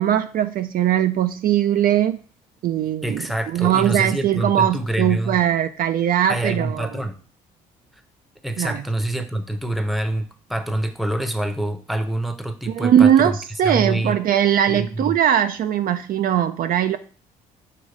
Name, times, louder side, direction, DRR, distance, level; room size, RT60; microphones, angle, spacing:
voice 1, 0.0-2.2 2.6-3.3 3.5-6.9 8.6-8.8 12.7-17.0, right 10 dB, 55° right, 9 dB, 0.4 m, -20 dB
voice 2, 3.0-5.4 6.3-7.2 8.4-13.4 13.6-14.2 14.7-15.2, right 1 dB, ahead, 8 dB, 0.8 m, -26 dB
6.6 x 3.1 x 4.8 m, 0.41 s
supercardioid pair, 65°, 17 cm